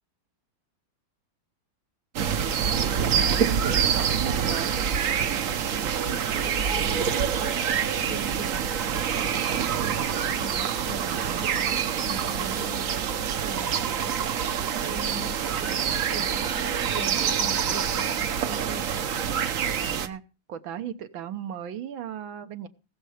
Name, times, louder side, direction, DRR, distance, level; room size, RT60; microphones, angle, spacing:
sound 1, 2.1-20.1, right 7 dB, 55° right, 1.0 m, -26 dB
voice 1, 2.8-4.7 19.8-20.2 20.5-22.7, right 10 dB, 80° right, 1.8 m, -36 dB
voice 2, 3.6-4.0 5.9-14.2 14.7-19.1, right 2 dB, 10° right, 0.9 m, -41 dB
19.5 x 6.7 x 4.9 m
omnidirectional pair, 2.2 m